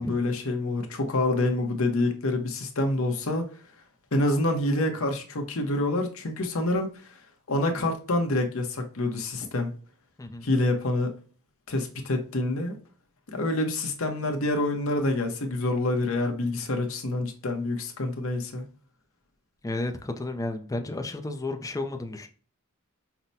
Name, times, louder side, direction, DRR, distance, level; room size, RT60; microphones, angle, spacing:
voice 1, 0.0-3.5 4.1-7.0 7.5-9.7 10.4-11.1 11.7-12.7 13.3-18.6, left 2 dB, 65° left, 0.9 m, -27 dB
voice 2, 19.6-22.3, left 2 dB, 15° left, 0.4 m, -32 dB
5.7 x 2.1 x 2.6 m
head